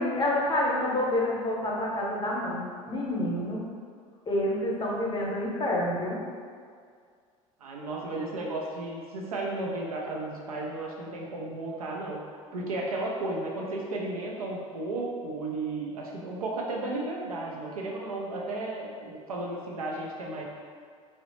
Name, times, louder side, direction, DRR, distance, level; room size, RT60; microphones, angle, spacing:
voice 1, 0.0-3.6 4.3-6.2, left 1 dB, 25° left, -4 dB, 0.7 m, -28 dB
voice 2, 7.6-12.2 12.5-20.4, right 2 dB, 90° right, -2 dB, 0.4 m, -34 dB
2.7 x 2.0 x 2.9 m, 2.1 s
hypercardioid pair, 70°, 18 cm